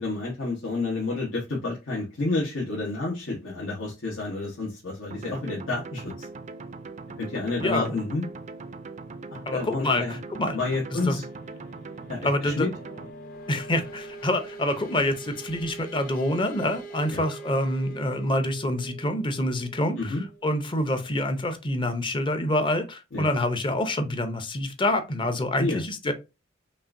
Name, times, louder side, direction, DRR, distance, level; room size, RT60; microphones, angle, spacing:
voice 1, 0.0-6.3 7.2-8.3 9.3-10.2 10.5-11.2 12.1-12.7 17.1-17.2 20.0-20.2 23.1-23.2 25.6-25.8, left 3 dB, 80° left, -4 dB, 1.1 m, -29 dB
sound 1, 5.1-13.1, right 3 dB, 40° right, 0.4 m, -41 dB
voice 2, 7.6-7.9 9.5-10.6 10.9-11.2 12.2-12.7 13.5-20.2 20.4-26.1, left 1 dB, 25° left, 8 dB, 0.6 m, -26 dB
sound 2, 9.0-21.5, right 3 dB, 50° left, 0.9 m, -44 dB
5.4 x 2.5 x 2.5 m, 0.27 s
head